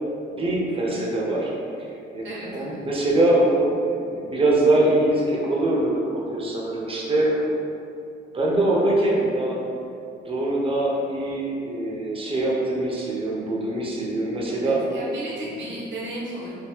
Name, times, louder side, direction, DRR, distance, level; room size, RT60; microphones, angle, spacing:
voice 1, 0.3-1.5 2.1-7.5 8.3-9.6 10.2-14.8, right 2 dB, 30° right, -3 dB, 0.7 m, -23 dB
voice 2, 2.2-2.8 14.4-16.5, right 1 dB, 70° right, -5 dB, 1.0 m, -35 dB
2.9 x 2.7 x 3.5 m, 2.5 s
cardioid pair, 90°, 20 cm